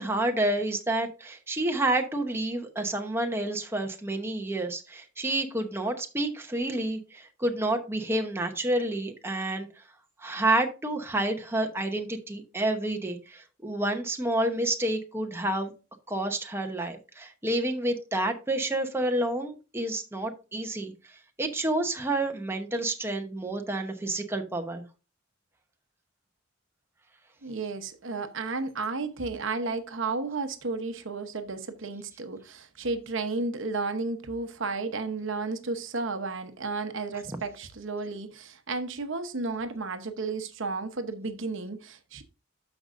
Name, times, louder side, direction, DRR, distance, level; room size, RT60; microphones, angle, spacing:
voice 1, 0.0-9.7 10.2-15.7 16.1-24.8, right 1 dB, 10° right, 0.9 m, -29 dB
voice 2, 27.4-42.2, right 3 dB, 65° right, 0.9 m, -33 dB
12.5 x 5.2 x 2.5 m
head